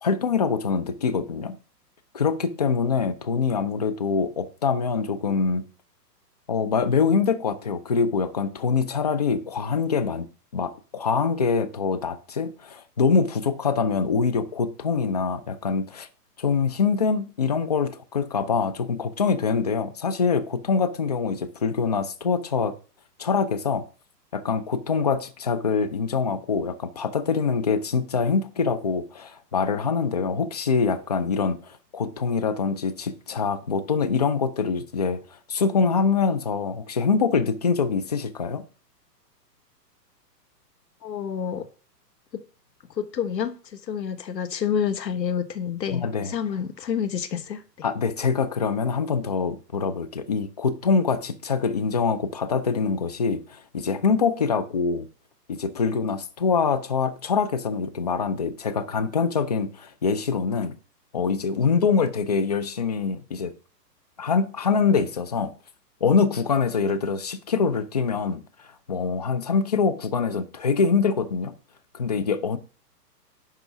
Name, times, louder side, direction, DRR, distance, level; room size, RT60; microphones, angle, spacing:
voice 1, 0.0-1.6 2.1-5.6 6.5-10.3 10.5-16.1 16.4-22.8 23.2-23.9 24.3-38.6 45.9-46.3 47.8-55.1 55.5-60.8 61.1-63.5 64.2-65.5 66.0-71.5 71.9-72.6, left 5 dB, 30° left, 0.4 m, -24 dB
voice 2, 41.0-41.7 42.3-42.4 43.0-43.5 43.9-47.6, left 8 dB, 80° left, 1.4 m, -28 dB
10.5 x 3.7 x 5.9 m
hypercardioid pair, 140°, 49 cm